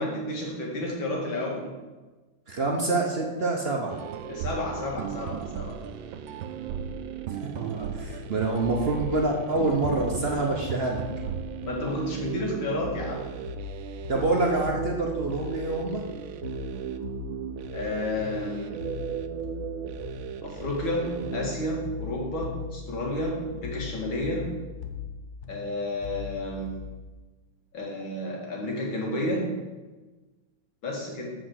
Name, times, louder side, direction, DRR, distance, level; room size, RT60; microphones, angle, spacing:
voice 1, 0.0-1.7 4.3-5.8 11.7-13.3 17.7-18.8 20.4-24.5 25.5-26.8 27.7-29.5 30.8-31.3, left 1 dB, 70° left, -2 dB, 2.6 m, -31 dB
voice 2, 2.5-4.0 7.5-11.0 14.1-16.0, right 2 dB, 55° right, 0 dB, 0.7 m, -26 dB
sound 1, 3.9-21.7, right 9 dB, 75° right, 1.3 m, -36 dB
sound 2, 8.0-27.1, left 7 dB, 85° left, 0.6 m, -40 dB
8.0 x 5.1 x 6.4 m, 1.2 s
omnidirectional pair, 2.3 m